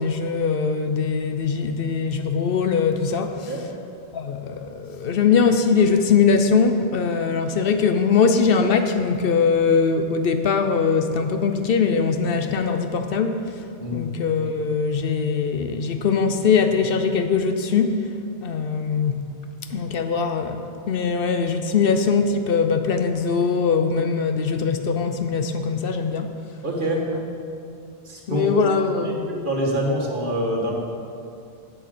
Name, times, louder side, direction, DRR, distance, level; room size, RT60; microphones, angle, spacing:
voice 1, 0.0-3.5 4.1-13.4 13.9-18.0 18.4-19.2 19.7-20.6 20.9-26.3 27.7-27.8 28.3-29.3, left 5 dB, 60° left, 7 dB, 0.8 m, -21 dB
voice 2, 26.6-27.0 28.0-28.5 29.0-30.7, right 1 dB, 50° right, -1 dB, 1.5 m, -25 dB
8.0 x 7.5 x 6.6 m, 2.5 s
omnidirectional pair, 1.1 m